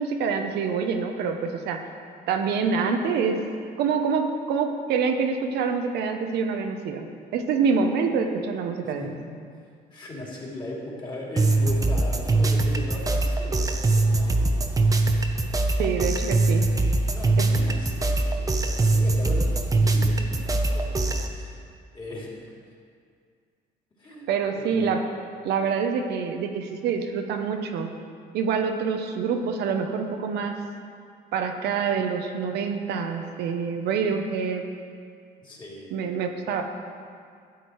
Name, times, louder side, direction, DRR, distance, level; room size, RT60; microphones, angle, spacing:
voice 1, 0.0-1.8 2.3-3.4 3.8-7.1 7.3-9.1 15.8-16.7 17.4-17.5 24.3-25.0 25.4-27.9 28.3-30.6 31.3-34.6 35.9-36.6, right 5 dB, 75° right, 4 dB, 1.0 m, -26 dB
voice 2, 8.8-9.2 9.9-14.6 14.8-15.1 17.0-21.6 21.9-22.5 24.0-24.3 24.6-24.9 35.4-35.9, left 1 dB, 25° left, -3 dB, 3.0 m, -38 dB
sound 1, 11.4-21.3, right 2 dB, 20° right, 0.9 m, -22 dB
13.0 x 8.4 x 4.7 m, 2.2 s
cardioid pair, 110°, 17 cm